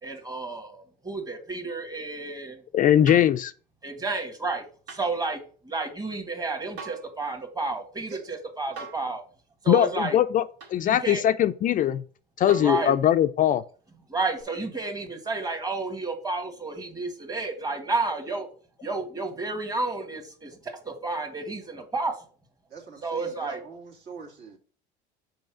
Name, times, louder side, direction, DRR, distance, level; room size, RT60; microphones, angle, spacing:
voice 1, 0.0-2.6 3.8-9.2 9.6-10.2 10.8-11.2 12.6-13.0 14.1-18.5 18.8-22.1 23.0-23.6, right 3 dB, 20° right, 1.7 m, -31 dB
voice 2, 2.7-3.5 9.7-10.4 10.7-12.0 12.4-13.6, left 11 dB, 40° left, 0.4 m, -21 dB
sound 1, 3.1-3.4 4.9-5.1 6.8-7.1 8.8-9.1 10.6-10.8 12.5-12.8 14.4-14.5, right 4 dB, 80° right, 2.0 m, -40 dB
voice 3, 22.7-24.6, right 5 dB, 55° right, 2.2 m, -45 dB
5.3 x 4.2 x 6.0 m
supercardioid pair, 90°, 21 cm